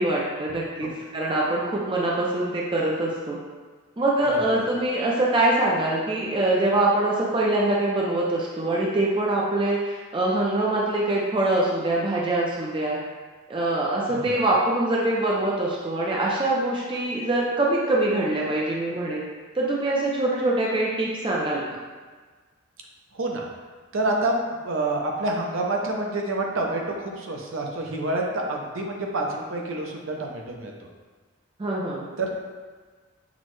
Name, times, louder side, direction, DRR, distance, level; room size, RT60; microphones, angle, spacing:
voice 1, 0.0-3.4 4.0-13.0 13.5-19.3 19.5-21.8 31.6-32.1, right 2 dB, 25° right, -4 dB, 0.4 m, -24 dB
voice 2, 23.1-23.5 23.9-30.7 32.2-32.3, right 2 dB, 70° right, 0 dB, 0.6 m, -27 dB
6.0 x 2.1 x 3.1 m, 1.4 s
head